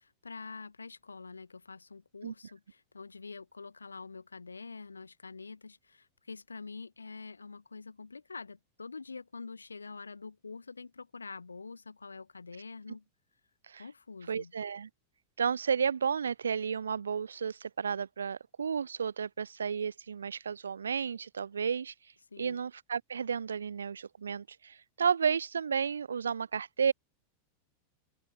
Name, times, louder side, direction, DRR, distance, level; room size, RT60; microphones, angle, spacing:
voice 1, 0.0-13.0 13.8-14.5 22.3-22.6, left 4 dB, 75° left, 1.7 m, -46 dB
voice 2, 14.3-14.9 15.4-21.9 22.4-26.9, right 6 dB, 70° right, 0.9 m, -32 dB
open air
figure-of-eight pair, 90°, 0 cm